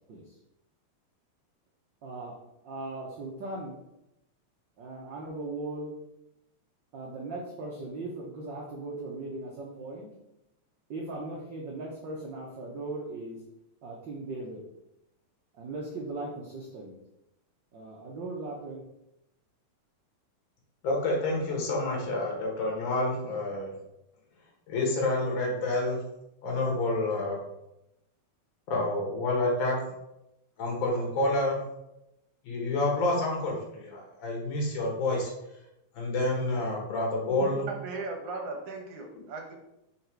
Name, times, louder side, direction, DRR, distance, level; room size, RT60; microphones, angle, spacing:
voice 1, 2.0-2.4 2.6-3.8 4.8-5.9 6.9-10.1 10.9-13.4 13.8-14.6 15.5-17.0 17.7-18.8, right 2 dB, 90° right, -2 dB, 1.0 m, -38 dB
voice 2, 20.8-23.7 24.7-26.0 26.4-27.4 28.7-29.8 30.6-31.6 32.4-35.3 36.0-37.6, left 2 dB, 85° left, -1 dB, 2.9 m, -28 dB
voice 3, 37.4-39.6, right 3 dB, 65° right, 2 dB, 1.7 m, -37 dB
5.8 x 4.1 x 4.5 m, 0.87 s
omnidirectional pair, 3.4 m